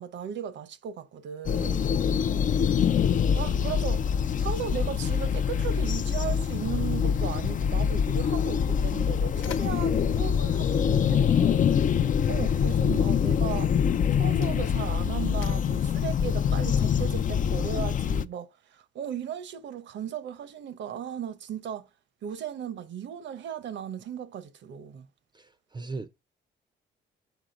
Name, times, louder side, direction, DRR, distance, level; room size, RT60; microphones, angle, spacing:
voice 1, 0.0-1.8 3.3-4.1 4.4-11.7 12.3-13.7 14.1-21.9 22.2-25.1, right 9 dB, 65° right, 0.8 m, -36 dB
sound 1, 1.5-18.3, left 7 dB, 40° left, 0.4 m, -25 dB
voice 2, 1.6-2.0 11.9-12.2 25.3-26.1, right 3 dB, 20° right, 0.5 m, -39 dB
Mechanisms, 9.3-11.6 12.6-12.8 13.6-17.2, left 8 dB, 85° left, 1.0 m, -49 dB
6.2 x 4.9 x 5.2 m
cardioid pair, 90°, 20 cm